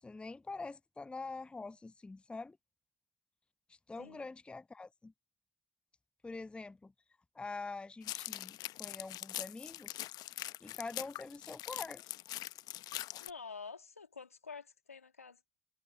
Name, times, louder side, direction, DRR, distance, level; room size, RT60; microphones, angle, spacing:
voice 1, 0.0-2.6 3.7-5.1 6.2-6.9 7.3-10.0 10.6-12.0, left 3 dB, 15° left, 0.4 m, -45 dB
sound 1, 8.0-13.3, left 15 dB, 60° left, 0.8 m, -43 dB
voice 2, 13.2-15.4, left 5 dB, 90° left, 2.0 m, -48 dB
figure-of-eight pair, 45°, 8 cm